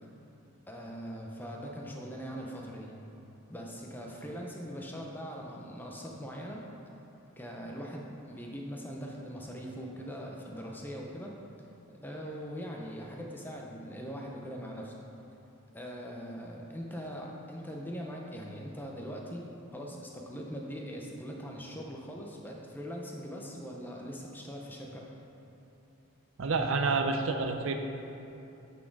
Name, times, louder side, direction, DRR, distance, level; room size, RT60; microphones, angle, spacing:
voice 1, 0.7-3.0 3.5-6.7 7.4-11.4 11.9-14.9 15.7-25.1, equal, 10° left, -1 dB, 0.6 m, -41 dB
voice 2, 26.4-27.8, right 4 dB, 60° right, 5 dB, 0.4 m, -28 dB
9.1 x 4.4 x 4.6 m, 2.9 s
head